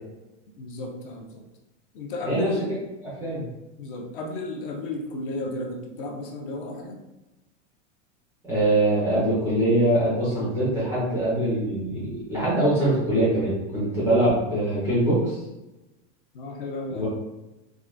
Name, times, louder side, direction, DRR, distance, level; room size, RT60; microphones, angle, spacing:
voice 1, 0.6-1.4 1.9-2.7 3.8-7.0 16.3-17.1, left 2 dB, 45° left, 2 dB, 0.5 m, -33 dB
voice 2, 3.0-3.4 8.4-15.4 16.9-17.1, right 1 dB, 5° right, -9 dB, 0.4 m, -23 dB
3.5 x 2.5 x 2.5 m, 1.0 s
supercardioid pair, 170°, 37 cm